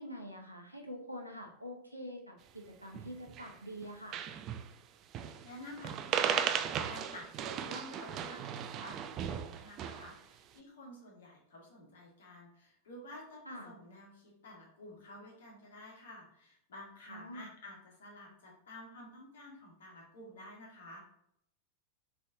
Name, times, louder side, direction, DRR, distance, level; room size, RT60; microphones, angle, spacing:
voice 1, 0.0-4.2 13.5-13.7 17.1-17.5, equal, 90° right, 2 dB, 0.7 m, -45 dB
sound 1, 2.9-3.5 3.8-4.7 5.1-5.5 5.8-10.2, right 8 dB, 35° right, 0.3 m, -36 dB
voice 2, 5.4-21.0, left 1 dB, 60° left, -1 dB, 1.4 m, -51 dB
4.1 x 3.3 x 3.6 m, 0.74 s
figure-of-eight pair, 90°, 0 cm